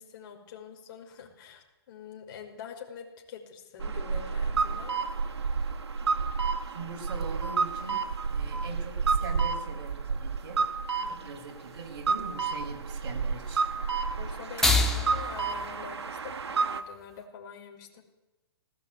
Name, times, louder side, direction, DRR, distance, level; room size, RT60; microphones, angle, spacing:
voice 1, 0.0-4.9 11.0-11.3 14.2-18.0, left 7 dB, 50° left, 2 dB, 5.6 m, -45 dB
sound 1, 3.8-16.8, right 5 dB, 85° right, 2.0 m, -30 dB
sound 2, 4.5-17.3, left 2 dB, 5° left, 2.4 m, -36 dB
voice 2, 6.2-10.7 11.1-13.7, right 4 dB, 55° right, 1 dB, 5.7 m, -42 dB
19.0 x 18.0 x 9.4 m, 1.0 s
hypercardioid pair, 145°, 14 cm